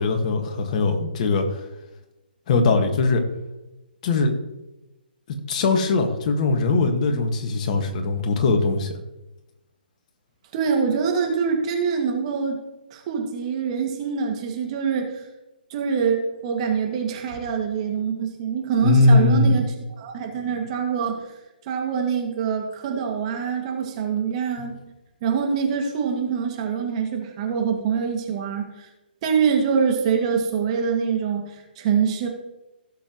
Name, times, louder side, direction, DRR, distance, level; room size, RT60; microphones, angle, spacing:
voice 1, 0.0-1.6 2.5-3.2 4.0-4.3 5.5-8.9 18.8-19.6 24.6-24.7, left 3 dB, 40° left, 4 dB, 1.8 m, -20 dB
voice 2, 10.5-12.6 12.9-15.2 15.7-19.7 20.0-21.2 21.7-24.8 25.2-28.9 29.2-32.3, right 6 dB, 35° right, 2 dB, 2.2 m, -24 dB
17.0 x 7.0 x 3.1 m, 0.99 s
hypercardioid pair, 140°, 6 cm